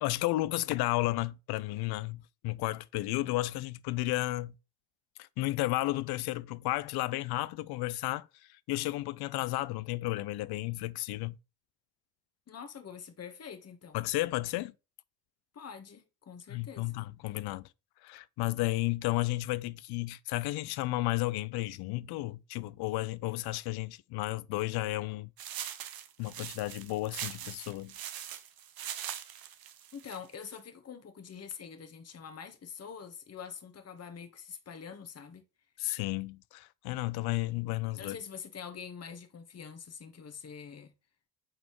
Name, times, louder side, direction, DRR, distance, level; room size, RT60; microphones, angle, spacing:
voice 1, 0.0-4.5 5.2-8.3 8.7-11.4 13.9-14.7 16.5-17.7 18.0-25.3 26.2-27.9 35.8-38.2, left 18 dB, 55° left, 0.5 m, -33 dB
voice 2, 12.5-14.0 15.5-16.9 29.9-35.4 38.0-40.9, left 7 dB, 35° left, 1.3 m, -45 dB
sound 1, 25.4-30.6, right 10 dB, 50° right, 1.0 m, -42 dB
7.8 x 4.1 x 3.0 m
hypercardioid pair, 55°, 46 cm